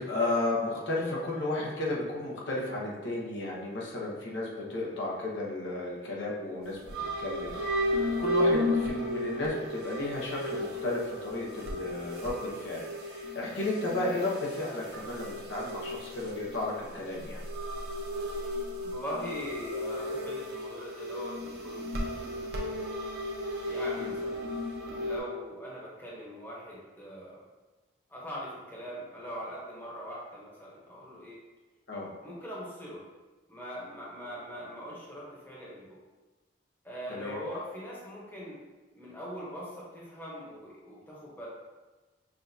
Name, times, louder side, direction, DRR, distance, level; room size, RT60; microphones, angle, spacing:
voice 1, 0.0-6.8 7.2-7.5 7.8-17.4 24.0-24.1 31.9-32.1 37.1-37.4, left 2 dB, 85° left, -4 dB, 0.9 m, -33 dB
sound 1, 6.6-25.2, left 1 dB, 60° right, 0.8 m, -34 dB
voice 2, 18.8-22.8 23.7-24.5 25.0-27.4 28.1-31.4 32.2-33.0 33.5-36.0 36.8-38.6 38.9-41.5, equal, 10° left, -7 dB, 0.9 m, -41 dB
5.9 x 2.4 x 2.7 m, 1.2 s
head